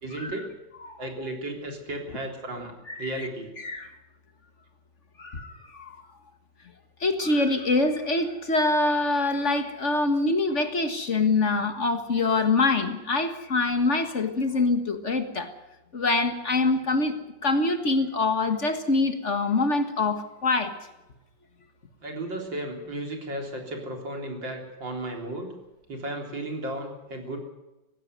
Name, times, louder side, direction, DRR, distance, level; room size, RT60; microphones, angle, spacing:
voice 1, 0.0-0.5 1.0-2.7 3.0-3.5 22.0-25.5 25.9-27.4, right 1 dB, 80° right, 3 dB, 4.4 m, -34 dB
voice 2, 2.9-3.3 3.6-3.9 5.2-6.0 7.0-15.5 15.9-17.1 17.4-20.7, left 3 dB, 40° left, 8 dB, 1.8 m, -25 dB
18.5 x 15.5 x 9.4 m, 0.99 s
omnidirectional pair, 2.0 m